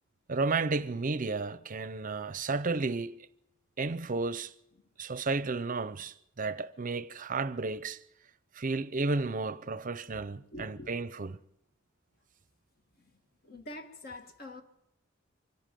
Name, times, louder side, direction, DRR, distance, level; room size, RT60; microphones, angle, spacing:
voice 1, 0.3-3.3 3.8-4.5 5.0-8.0 8.5-11.4, right 3 dB, 40° right, 0.7 m, -32 dB
voice 2, 10.5-10.9 13.0-13.1 13.4-14.6, left 1 dB, 50° left, 1.7 m, -45 dB
25.0 x 11.5 x 9.2 m
head